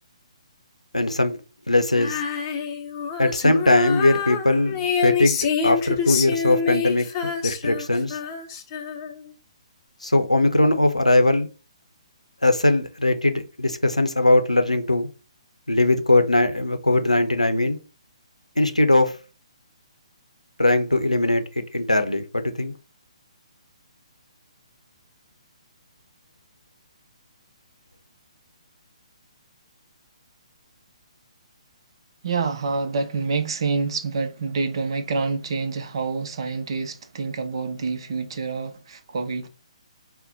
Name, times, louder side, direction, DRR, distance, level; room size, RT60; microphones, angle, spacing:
voice 1, 0.9-1.4 1.7-2.2 3.2-8.2 10.0-11.5 12.4-15.1 15.7-17.8 18.6-19.1 20.6-21.4 21.7-22.7, left 2 dB, 90° left, 0.6 m, -20 dB
Female singing, 1.9-9.3, left 7 dB, 25° left, 0.6 m, -27 dB
voice 2, 32.2-39.5, right 4 dB, 50° right, 0.6 m, -27 dB
4.2 x 2.1 x 3.9 m
figure-of-eight pair, 135°, 3 cm